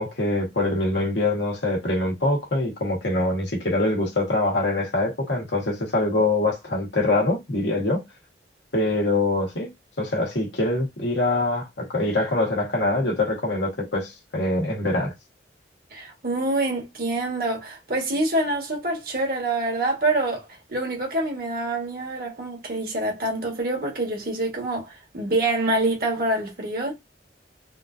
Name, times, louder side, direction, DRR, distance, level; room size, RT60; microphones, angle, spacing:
voice 1, 0.0-8.0 8.7-9.7 10.0-15.1, left 2 dB, 90° left, 1.3 m, -24 dB
voice 2, 15.9-26.9, right 2 dB, 55° right, 1.4 m, -26 dB
3.6 x 2.6 x 2.5 m
head